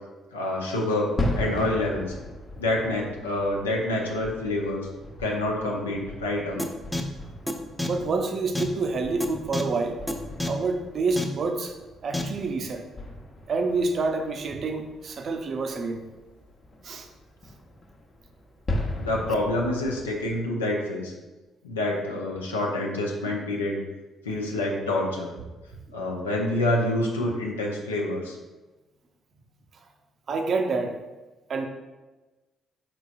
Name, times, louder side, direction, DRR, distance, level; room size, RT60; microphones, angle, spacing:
voice 1, 0.3-1.1 1.4-2.2 2.6-4.9 5.2-6.7 19.0-21.1 21.6-23.8 24.2-25.3 25.9-28.4, left 1 dB, 90° left, -1 dB, 0.5 m, -27 dB
sound 1, 1.1-20.5, left 1 dB, 40° left, 0.8 m, -38 dB
sound 2, 6.6-6.7 6.9-7.0 7.5-7.6 7.8-7.9 8.6-8.7 9.2-9.3 9.5-9.6 10.1-10.2 10.4-10.5 11.2-11.3 12.1-12.2, left 1 dB, 5° left, 0.6 m, -27 dB
voice 2, 7.8-10.0 10.5-11.8 12.0-12.8 13.5-16.0 16.8-17.1 30.3-31.0 31.5-31.7, right 3 dB, 50° right, 5 dB, 0.5 m, -27 dB
4.6 x 3.9 x 2.5 m, 1.2 s
hypercardioid pair, 45°, 0 cm